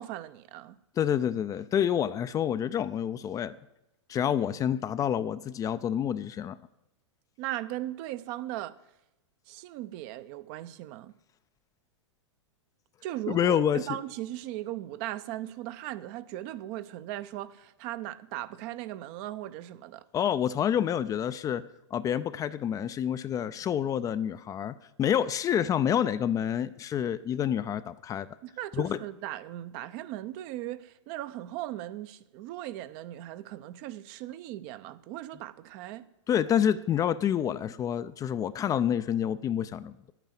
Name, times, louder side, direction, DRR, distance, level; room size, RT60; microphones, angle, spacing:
voice 1, 0.0-0.8 7.4-8.8 9.5-11.1 13.0-20.0 28.4-36.0, right 14 dB, 45° right, 0.7 m, -38 dB
voice 2, 1.0-3.5 4.1-6.6 13.3-13.9 20.1-21.6 21.9-28.3 28.7-29.0 36.3-40.1, left 9 dB, 20° left, 0.4 m, -28 dB
10.0 x 9.1 x 7.6 m
hypercardioid pair, 110°, 16 cm